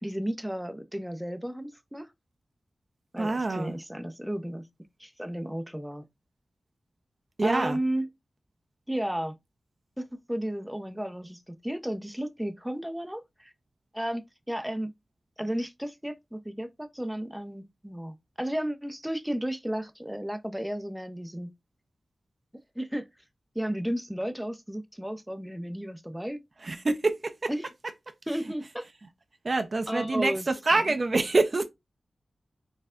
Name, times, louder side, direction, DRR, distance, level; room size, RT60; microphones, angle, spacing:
voice 1, 0.0-2.1 3.1-4.7 5.0-6.0 7.4-8.1 8.9-9.4 10.0-13.5 13.9-14.9 15.4-21.5 22.8-23.1 23.5-26.4 27.5-27.7 28.3-28.9 29.9-30.5 30.7-30.9, equal, 5° right, 0.6 m, -33 dB
voice 2, 3.2-3.7 7.4-7.8 26.6-27.5 29.4-31.6, right 3 dB, 50° right, 0.7 m, -26 dB
4.3 x 3.2 x 2.5 m
wide cardioid pair, 60°, 0 cm